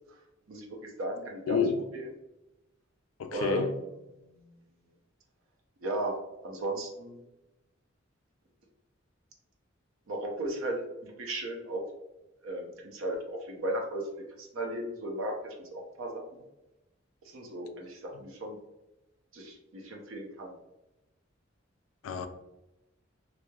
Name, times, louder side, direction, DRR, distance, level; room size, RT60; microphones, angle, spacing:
voice 1, 0.5-2.1 3.3-3.9 5.8-6.2 6.4-7.2 10.1-11.8 12.4-14.1 14.4-16.4 17.2-18.6 19.3-20.5, right 1 dB, 85° right, 1 dB, 0.6 m, -36 dB
voice 2, 1.5-1.8 3.2-3.7 22.0-22.3, left 5 dB, 80° left, 8 dB, 0.3 m, -28 dB
2.9 x 2.0 x 2.2 m, 0.95 s
head